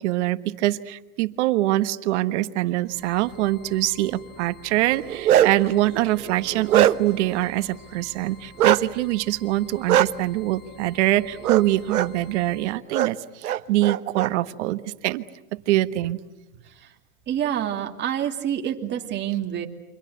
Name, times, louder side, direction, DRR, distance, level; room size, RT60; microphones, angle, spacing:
voice 1, 0.0-15.2 15.5-16.2, right 16 dB, 50° right, 12 dB, 1.3 m, -24 dB
sound 1, 2.8-12.8, left 3 dB, 45° left, 6.4 m, -49 dB
Bark, 4.9-5.7 6.2-7.2 8.6-8.8 9.9-10.1 11.4-11.6 11.9-12.1 12.9-13.1 13.4-14.3, right 11 dB, 85° right, 1.1 m, -20 dB
voice 2, 17.3-19.7, right 10 dB, 25° right, 3 dB, 2.6 m, -27 dB
29.0 x 25.0 x 8.1 m, 0.99 s
hypercardioid pair, 135°, 43 cm